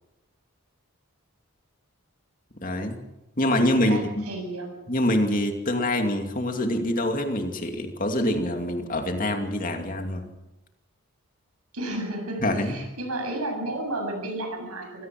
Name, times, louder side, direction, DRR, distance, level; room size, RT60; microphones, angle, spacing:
voice 1, 2.6-3.0 3.4-4.2 4.9-10.3 12.4-12.8, left 1 dB, 35° left, 5 dB, 2.6 m, -25 dB
voice 2, 3.5-4.9 11.7-15.1, right 1 dB, 85° right, 3 dB, 7.9 m, -32 dB
25.0 x 17.5 x 6.1 m, 0.97 s
head